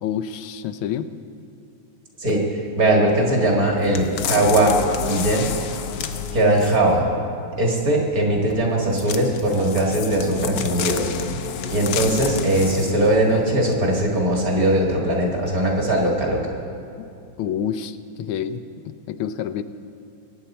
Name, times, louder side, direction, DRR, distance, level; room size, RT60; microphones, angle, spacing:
voice 1, 0.0-1.1 17.0-17.1 17.4-19.6, left 9 dB, 85° left, 11 dB, 1.4 m, -28 dB
voice 2, 2.2-4.7 5.1-5.5 6.3-7.1 7.6-11.1 11.7-16.4, right 1 dB, 45° right, -1 dB, 2.2 m, -20 dB
sound 1, 3.9-6.9 8.9-13.1 13.7-13.8, left 7 dB, 65° left, 1.0 m, -29 dB
22.5 x 9.1 x 4.3 m, 2.5 s
omnidirectional pair, 2.2 m